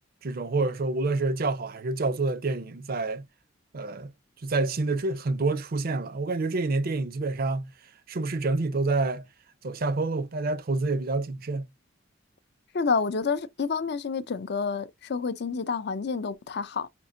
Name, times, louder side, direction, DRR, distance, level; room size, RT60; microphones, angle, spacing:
voice 1, 0.2-3.2 3.7-4.1 4.4-7.7 8.1-9.3 9.6-11.7, right 3 dB, 50° right, 0.5 m, -27 dB
voice 2, 12.7-16.9, left 5 dB, 55° left, 0.5 m, -29 dB
5.2 x 2.8 x 2.6 m
head